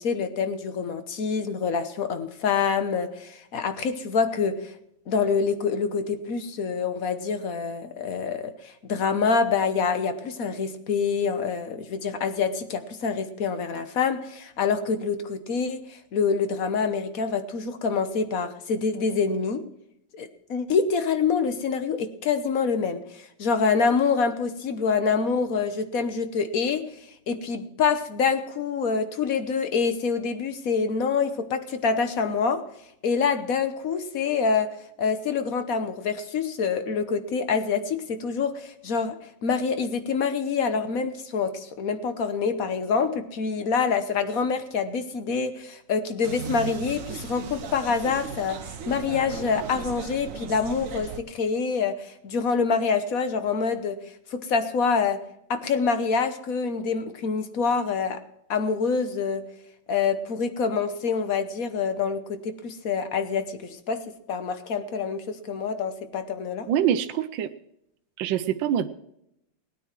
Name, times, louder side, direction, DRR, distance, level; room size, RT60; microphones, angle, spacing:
voice 1, 0.0-4.7 5.1-19.7 20.1-26.9 27.3-32.6 33.0-54.0 54.3-55.2 55.5-58.2 58.5-59.5 59.9-64.0 64.3-66.7, left 5 dB, 50° left, 9 dB, 1.3 m, -26 dB
sound 1, 46.2-51.2, right 6 dB, 55° right, 1.1 m, -37 dB
voice 2, 66.7-67.5 68.2-68.9, right 10 dB, 75° right, 9 dB, 1.4 m, -24 dB
19.0 x 9.2 x 4.6 m, 0.79 s
omnidirectional pair, 2.1 m